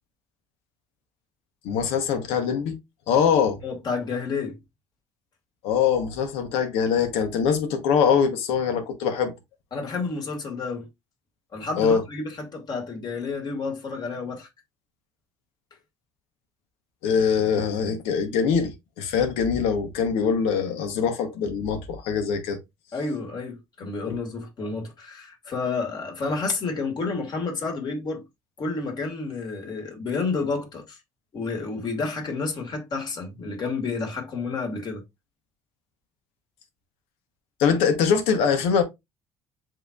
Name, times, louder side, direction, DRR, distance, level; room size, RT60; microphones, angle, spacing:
voice 1, 1.6-2.8 3.1-3.6 5.6-9.3 11.8-12.0 17.0-18.7 19.0-22.6 24.1-24.2 37.6-38.8, left 6 dB, 85° left, 1.1 m, -23 dB
voice 2, 3.6-4.6 9.7-10.9 11.5-14.5 22.9-28.2 28.6-31.0 31.3-35.0, left 4 dB, 45° left, 2.1 m, -30 dB
7.5 x 2.9 x 2.4 m
cardioid pair, 100°, 10 cm